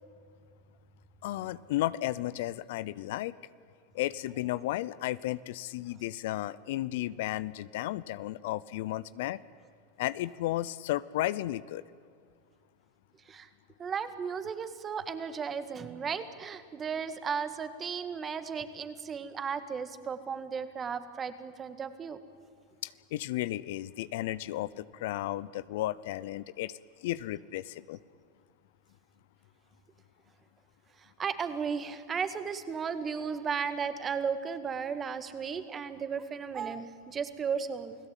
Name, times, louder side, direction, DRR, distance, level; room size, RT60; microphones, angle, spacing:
voice 1, 1.2-3.4 3.9-9.4 10.0-11.8 22.8-28.0, left 15 dB, 70° left, 18 dB, 0.7 m, -34 dB
voice 2, 13.8-22.2 31.2-38.0, right 6 dB, 25° right, 11 dB, 1.9 m, -35 dB
29.0 x 17.0 x 9.1 m, 2.2 s
hypercardioid pair, 110°, 0 cm